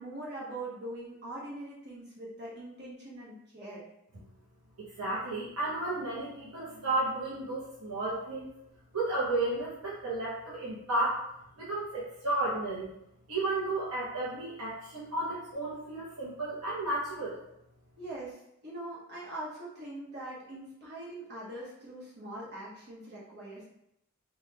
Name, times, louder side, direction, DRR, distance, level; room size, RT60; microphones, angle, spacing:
voice 1, 0.0-3.8 18.0-23.7, right 1 dB, 50° right, -6 dB, 1.1 m, -42 dB
voice 2, 4.8-8.5 8.9-11.2 11.6-12.9 13.3-17.4, right 2 dB, 90° right, -8 dB, 0.8 m, -33 dB
3.3 x 2.4 x 2.8 m, 0.80 s
head